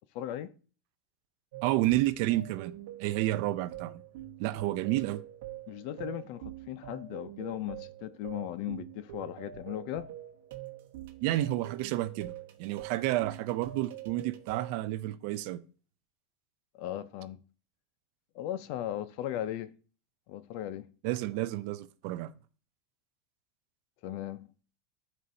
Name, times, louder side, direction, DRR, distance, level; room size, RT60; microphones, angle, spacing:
voice 1, 0.1-0.5 5.7-10.1 16.7-17.4 18.3-19.7 20.3-20.9 24.0-24.5, left 12 dB, 45° left, 0.5 m, -37 dB
sound 1, 1.5-14.7, right 12 dB, 60° right, 0.9 m, -45 dB
voice 2, 1.6-2.7 3.0-4.0 4.4-5.2 11.2-12.3 12.6-15.6 21.0-22.3, right 16 dB, 45° right, 0.4 m, -30 dB
12.5 x 4.2 x 2.7 m
supercardioid pair, 180°, 0 cm